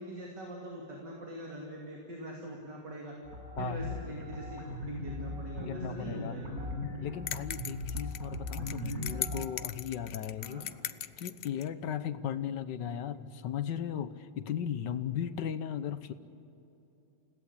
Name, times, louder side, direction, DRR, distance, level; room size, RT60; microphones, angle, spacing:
voice 1, 0.0-3.1 3.6-6.5 10.4-10.7, right 1 dB, 80° right, -1 dB, 3.4 m, -43 dB
sound 1, 3.2-9.4, left 1 dB, 60° right, 5.5 m, -38 dB
voice 2, 5.7-6.4 7.0-10.6 11.2-16.1, left 9 dB, 85° left, 13 dB, 1.6 m, -36 dB
sound 2, 7.3-11.7, left 9 dB, 60° left, 0.7 m, -39 dB
29.5 x 17.5 x 8.5 m, 3.0 s
omnidirectional pair, 1.8 m